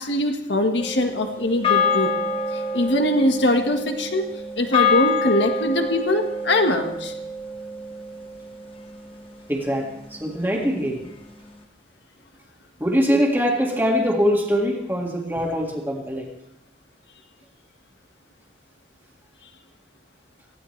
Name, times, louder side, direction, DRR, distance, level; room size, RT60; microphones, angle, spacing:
voice 1, 0.0-2.1 2.7-4.2 4.6-7.1, left 1 dB, 75° left, 5 dB, 1.6 m, -22 dB
sound 1, 0.8-9.3, left 4 dB, 30° left, 1.4 m, -26 dB
voice 2, 9.5-11.0 12.8-16.3, equal, 10° right, -1 dB, 2.0 m, -23 dB
19.0 x 15.0 x 3.3 m, 0.83 s
head